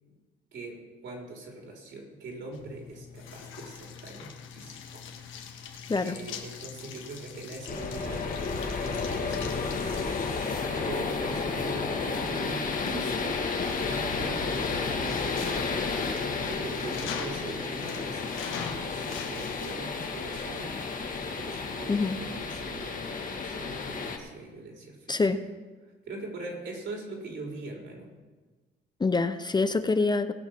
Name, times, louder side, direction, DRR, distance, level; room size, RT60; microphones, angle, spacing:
voice 1, 0.5-5.1 5.5-15.4 16.2-25.3 26.0-28.1, right 2 dB, 70° right, 1 dB, 3.8 m, -42 dB
sound 1, 2.5-19.8, left 7 dB, 80° left, 1.5 m, -43 dB
sound 2, 7.7-24.2, left 4 dB, 45° left, 1.6 m, -32 dB
voice 2, 25.1-25.4 29.0-30.3, left 3 dB, 20° left, 10 dB, 0.6 m, -25 dB
18.5 x 6.4 x 6.0 m, 1.3 s
cardioid pair, 90°, 20 cm